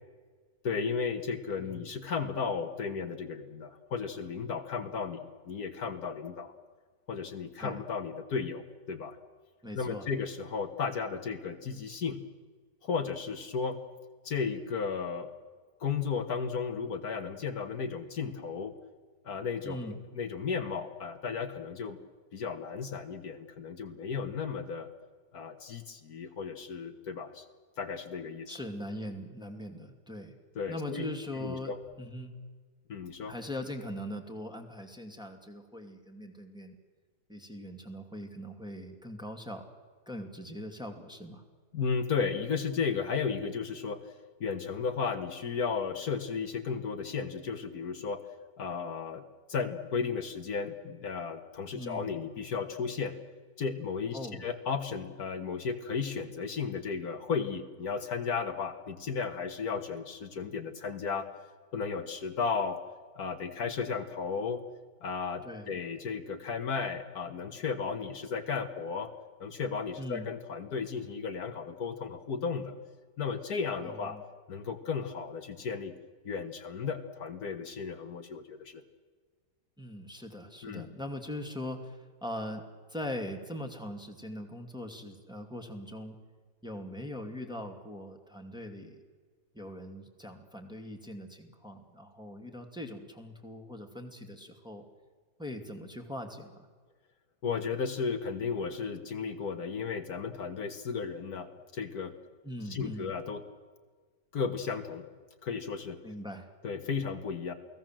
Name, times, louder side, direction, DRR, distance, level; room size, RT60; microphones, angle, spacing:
voice 1, 0.6-6.5 7.1-9.2 9.8-12.2 12.8-13.8 14.2-15.3 15.8-18.8 19.2-22.0 22.3-24.9 25.3-27.5 27.8-28.6 30.6-31.1 31.4-31.8 32.9-33.3 41.7-44.1 44.4-48.2 48.6-49.2 49.5-53.2 53.6-61.3 61.7-62.8 63.2-64.6 65.0-69.1 69.4-72.7 73.2-74.2 74.5-75.9 76.3-78.8 80.6-80.9 97.4-102.1 102.7-103.4 104.3-105.1 105.4-106.0 106.6-107.5, left 5 dB, 65° left, 7 dB, 1.8 m, -34 dB
voice 2, 9.6-10.1 19.6-20.0 28.5-30.4 30.7-32.3 33.2-36.8 37.3-39.6 40.1-41.4 51.7-52.1 54.1-54.5 65.4-65.8 70.0-70.3 73.8-74.2 79.8-82.6 82.9-86.2 86.6-89.0 89.5-94.9 95.4-96.7 102.4-103.1 106.0-106.5, left 1 dB, 5° right, 3 dB, 2.5 m, -41 dB
28.5 x 18.5 x 7.6 m, 1.5 s
omnidirectional pair, 1.8 m